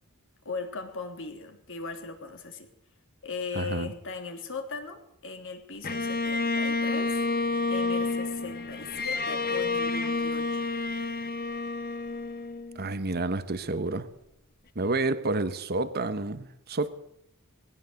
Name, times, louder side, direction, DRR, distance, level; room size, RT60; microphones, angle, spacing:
voice 1, 0.4-2.7 3.2-7.3 7.7-10.7 14.8-15.0, left 4 dB, 60° left, 5 dB, 3.0 m, -38 dB
voice 2, 3.5-3.9 12.7-14.1 14.7-16.9, right 2 dB, 45° right, 12 dB, 1.1 m, -29 dB
Bowed string instrument, 5.8-13.1, left 3 dB, 45° left, 1.5 m, -29 dB
20.0 x 17.0 x 7.8 m, 0.76 s
head